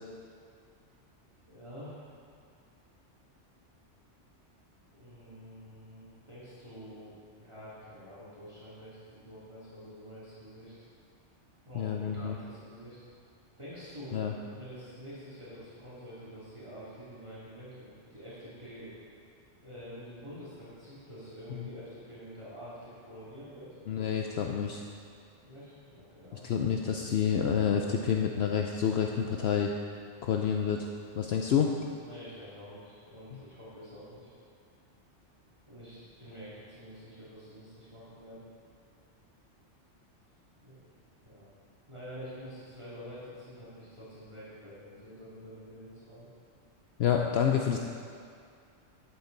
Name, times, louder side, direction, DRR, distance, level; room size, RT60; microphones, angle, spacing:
voice 1, 1.5-2.0 4.9-10.7 11.6-13.0 13.6-14.2 14.5-18.9 19.6-23.8 25.4-26.4 32.0-34.3 35.7-38.4 40.6-40.8 41.2-41.5 41.9-46.3, equal, 25° right, -12 dB, 2.9 m, -47 dB
voice 2, 11.7-12.3 14.1-14.3 21.5-21.7 23.9-24.8 26.4-29.7 30.2-30.9 31.2-31.7 47.0-47.8, left 8 dB, 65° left, 2 dB, 0.8 m, -28 dB
11.5 x 8.6 x 4.0 m, 2.3 s
omnidirectional pair, 1.2 m